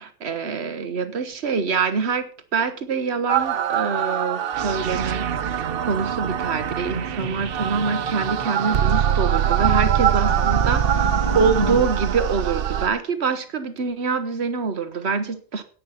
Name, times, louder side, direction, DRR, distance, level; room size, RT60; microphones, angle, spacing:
voice 1, 0.0-15.6, right 5 dB, 90° right, 10 dB, 1.4 m, -25 dB
sound 1, 3.3-12.9, right 9 dB, 65° right, 0.9 m, -23 dB
sound 2, 5.9-11.9, left 2 dB, 35° left, 1.6 m, -34 dB
10.0 x 9.3 x 5.7 m, 0.40 s
omnidirectional pair, 1.1 m